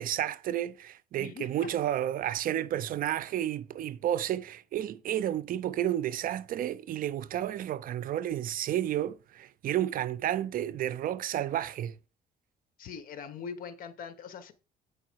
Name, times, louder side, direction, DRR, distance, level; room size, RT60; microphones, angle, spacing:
voice 1, 0.0-11.9, right 11 dB, 55° right, 0.5 m, -31 dB
voice 2, 1.2-1.7 12.8-14.5, left 6 dB, 55° left, 1.1 m, -42 dB
8.3 x 4.8 x 4.6 m
cardioid pair, 110°, 17 cm